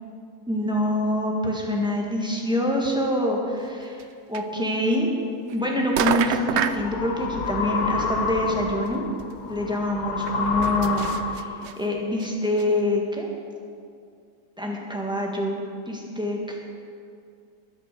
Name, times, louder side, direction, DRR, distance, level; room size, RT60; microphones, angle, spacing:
voice 1, 0.5-4.0 4.3-5.1 5.5-9.0 9.5-11.5 11.8-13.3 14.6-15.6 15.9-16.6, left 1 dB, 5° right, -1 dB, 1.8 m, -25 dB
sound 1, 4.0-4.1 4.3-4.4 5.5-5.6 5.9-6.8 8.4-8.5 8.8-8.9 9.2-9.3 10.3-11.7 12.2-12.3 12.6-12.7, right 8 dB, 70° right, 0.6 m, -27 dB
sound 2, 5.9-11.7, left 4 dB, 65° left, 1.3 m, -29 dB
12.0 x 10.5 x 6.9 m, 2.4 s
omnidirectional pair, 1.7 m